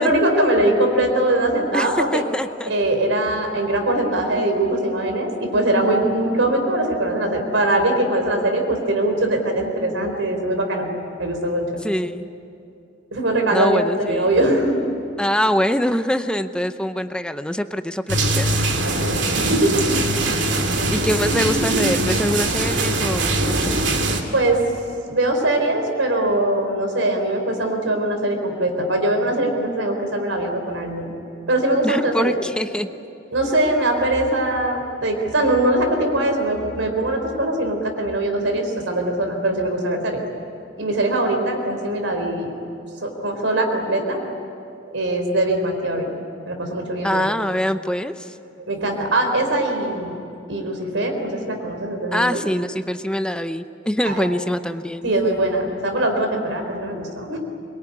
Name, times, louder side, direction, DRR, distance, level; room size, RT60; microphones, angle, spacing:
voice 1, 0.0-2.2 2.6-10.9 11.2-11.7 13.1-14.9 18.8-19.8 24.3-24.6 25.1-31.1 31.5-32.4 33.3-40.2 40.8-42.5 43.0-44.3 44.9-46.1 46.5-47.3 48.7-50.2 50.5-52.4 54.0-54.2 55.0-57.4, right 1 dB, 85° right, 4 dB, 4.2 m, -21 dB
voice 2, 1.7-2.7 11.8-12.3 13.5-14.3 15.2-18.5 20.9-23.8 31.8-32.9 47.0-48.3 52.1-55.1, equal, 5° left, 9 dB, 0.7 m, -24 dB
sound 1, 18.1-24.2, right 2 dB, 65° right, 2.7 m, -21 dB
23.5 x 22.5 x 9.8 m, 2.7 s
head